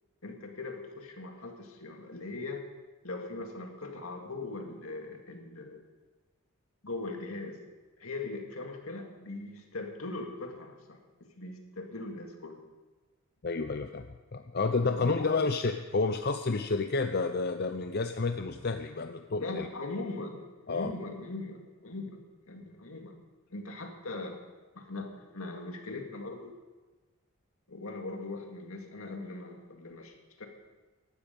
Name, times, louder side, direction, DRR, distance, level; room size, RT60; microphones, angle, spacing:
voice 1, 0.2-2.6 3.0-5.8 6.8-7.6 8.0-11.0 11.4-12.6 14.9-15.3 19.4-22.2 22.5-23.1 23.5-24.4 24.7-26.5 27.7-30.5, left 2 dB, 75° left, 3 dB, 2.1 m, -40 dB
voice 2, 13.4-19.7 20.7-20.9, left 3 dB, 45° left, 7 dB, 0.6 m, -30 dB
17.5 x 12.0 x 5.3 m, 1.3 s
head